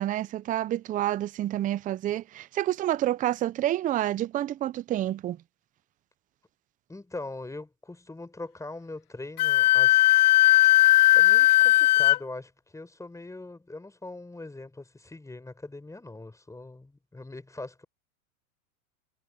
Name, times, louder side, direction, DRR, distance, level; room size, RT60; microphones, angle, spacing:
voice 1, 0.0-5.4, right 13 dB, 20° right, 0.5 m, -28 dB
voice 2, 6.9-10.0 10.7-17.8, left 2 dB, 5° left, 5.0 m, -41 dB
Wind instrument woodwind instrument, 9.4-12.2, left 15 dB, 85° left, 0.7 m, -18 dB
hypercardioid pair, 115°, 44 cm